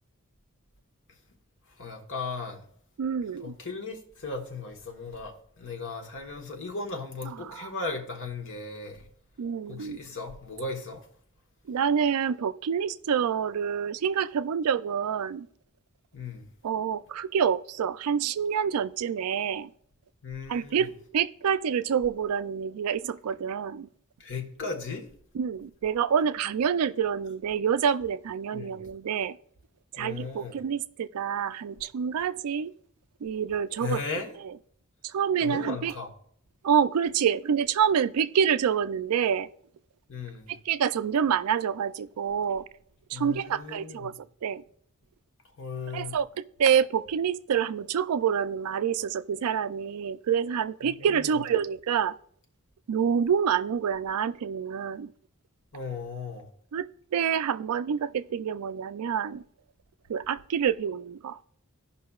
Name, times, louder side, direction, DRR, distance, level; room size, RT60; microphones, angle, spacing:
voice 1, 1.8-2.6 3.4-9.1 9.7-11.0 16.1-16.5 20.2-20.9 24.2-25.1 28.5-28.8 30.0-30.6 33.8-34.3 35.4-36.1 40.1-40.6 43.1-44.1 45.6-46.2 50.8-51.4 55.7-56.5, left 4 dB, 60° left, 1.2 m, -36 dB
voice 2, 3.0-3.5 7.2-7.7 9.4-10.0 11.7-15.5 16.6-19.7 20.5-23.9 25.3-29.4 29.9-32.7 33.2-34.0 34.4-34.5 35.0-35.9 36.6-39.5 40.5-42.6 43.1-44.1 44.4-44.6 45.9-52.2 52.9-55.1 56.7-59.4 60.1-61.4, right 7 dB, 90° right, 0.4 m, -27 dB
16.5 x 5.6 x 2.3 m
head